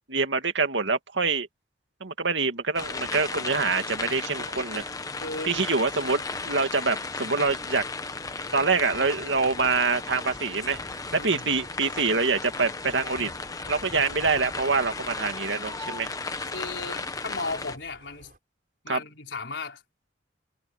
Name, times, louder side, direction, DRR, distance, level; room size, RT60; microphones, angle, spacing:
voice 1, 0.1-1.5 2.0-4.9 5.4-7.8 8.5-10.8 11.1-13.3 13.7-16.1 18.9-19.0, right 4 dB, 85° right, 2.3 m, -25 dB
sound 1, 2.8-17.8, left 3 dB, 20° left, 1.2 m, -35 dB
voice 2, 5.2-5.6 7.2-7.4 11.1-11.5 16.5-18.3 18.8-19.8, left 3 dB, 80° left, 4.3 m, -35 dB
sound 2, 11.4-18.4, right 2 dB, 50° right, 5.6 m, -55 dB
head